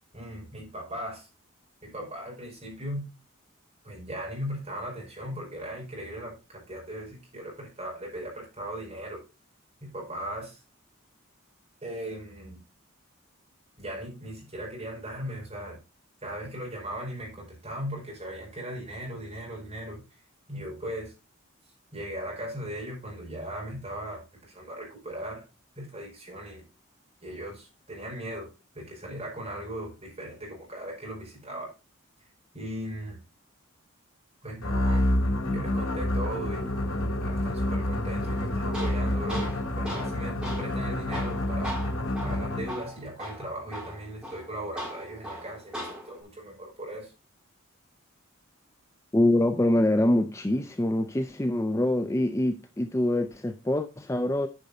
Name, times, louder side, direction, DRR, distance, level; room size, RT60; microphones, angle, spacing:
voice 1, 0.1-1.3 1.8-3.0 3.8-9.2 9.8-10.6 11.8-12.6 13.8-15.8 16.2-20.0 20.5-21.1 21.9-25.4 25.7-26.7 27.2-31.7 32.5-33.2 34.4-35.1 35.4-36.8 37.2-41.7 42.2-47.1, right 1 dB, 30° right, 4.9 m, -38 dB
sound 1, 34.6-42.9, left 1 dB, 70° left, 1.6 m, -28 dB
Tools, 38.2-46.2, equal, 5° right, 3.6 m, -40 dB
voice 2, 49.1-54.5, left 1 dB, 15° left, 0.4 m, -25 dB
10.5 x 5.2 x 4.1 m
head